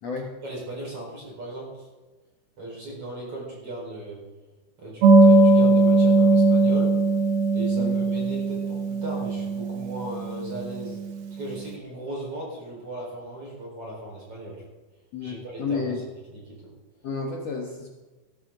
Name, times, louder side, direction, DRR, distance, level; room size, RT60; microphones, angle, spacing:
voice 1, 0.4-1.9 2.6-4.2 4.8-6.9 7.5-11.0 11.4-14.6 15.2-15.9 16.3-16.6, right 1 dB, 35° right, -4 dB, 5.5 m, -37 dB
sound 1, 5.0-11.2, right 3 dB, 70° right, 2.8 m, -19 dB
voice 2, 15.1-16.0 17.0-17.9, left 4 dB, 60° left, 0 dB, 1.8 m, -31 dB
19.0 x 12.5 x 3.9 m, 1.2 s
omnidirectional pair, 4.8 m